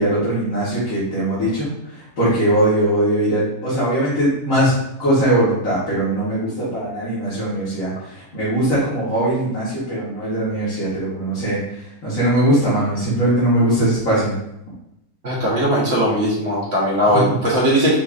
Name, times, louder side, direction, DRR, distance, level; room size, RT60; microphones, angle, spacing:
voice 1, 0.0-4.7 5.0-14.3, right 1 dB, 60° left, -11 dB, 1.9 m, -20 dB
voice 2, 15.2-18.0, equal, 45° right, -6 dB, 1.5 m, -18 dB
5.9 x 2.8 x 2.5 m, 0.83 s
omnidirectional pair, 1.6 m